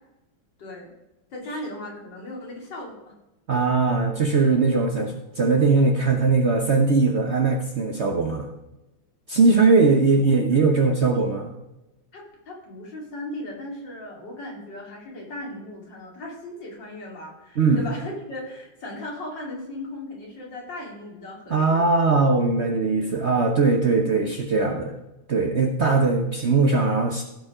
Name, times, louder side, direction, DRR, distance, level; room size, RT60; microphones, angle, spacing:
voice 1, 0.6-0.9 1.3-3.1 10.2-10.6 12.1-21.8 23.0-23.2, left 1 dB, 65° left, -1 dB, 3.2 m, -37 dB
voice 2, 3.5-8.5 9.3-11.5 17.6-17.9 21.5-24.9 25.3-27.2, right 4 dB, 45° right, 3 dB, 1.0 m, -20 dB
15.5 x 5.3 x 4.9 m, 0.97 s
omnidirectional pair, 2.1 m